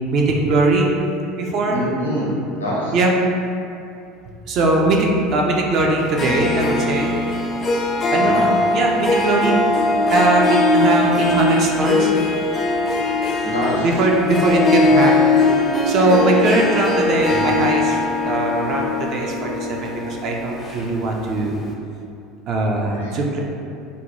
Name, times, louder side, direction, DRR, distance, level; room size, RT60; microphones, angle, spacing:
voice 1, 0.1-0.9 1.4-1.8 2.9-3.1 4.5-7.1 8.1-9.6 10.0-12.1 13.8-15.1 15.9-21.6 22.5-23.4, right 2 dB, 50° right, 0 dB, 0.4 m, -20 dB
voice 2, 1.7-2.3 2.6-2.9 8.2-8.5 13.4-13.9 22.9-23.2, equal, 85° left, -6 dB, 0.6 m, -25 dB
Harp, 6.0-21.3, left 2 dB, 30° left, 0.4 m, -20 dB
2.7 x 2.2 x 2.8 m, 2.6 s
figure-of-eight pair, 70°, 0 cm